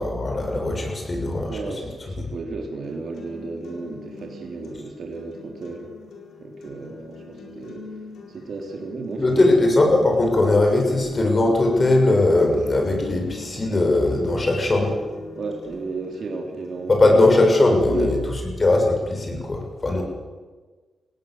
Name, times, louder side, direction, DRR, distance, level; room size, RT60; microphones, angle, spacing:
voice 1, 0.0-1.6 9.2-14.9 16.9-20.0, left 2 dB, 40° left, 2 dB, 6.8 m, -19 dB
voice 2, 1.5-5.9 6.4-7.8 8.3-9.7 10.9-11.0 15.4-17.2 17.9-18.2, right 3 dB, 65° right, 3 dB, 3.5 m, -33 dB
sound 1, 2.8-18.8, left 3 dB, 85° left, 5.0 m, -42 dB
20.5 x 17.5 x 8.1 m, 1.4 s
cardioid pair, 65°, 0 cm